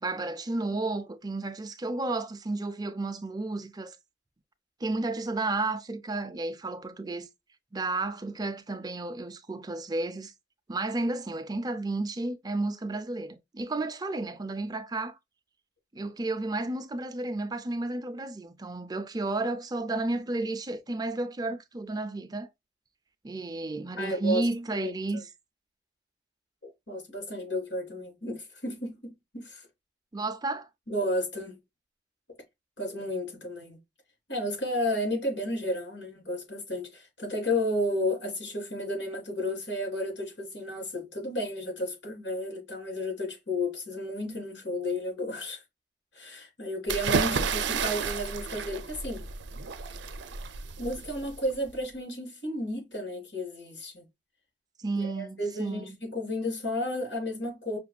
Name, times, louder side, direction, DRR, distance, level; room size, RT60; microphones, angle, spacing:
voice 1, 0.0-4.0 4.8-7.3 7.7-10.3 10.7-15.2 15.9-22.5 23.2-25.3 30.1-30.7 54.8-56.0, right 2 dB, 20° right, 0.4 m, -32 dB
voice 2, 24.0-24.5 24.7-25.2 26.6-29.7 30.9-31.6 32.8-33.8 34.3-45.6 46.1-49.3 50.8-54.0 54.9-57.8, left 1 dB, 85° left, 2.9 m, -32 dB
sound 1, 46.9-51.7, right 5 dB, 75° right, 0.5 m, -31 dB
5.8 x 2.6 x 2.3 m
head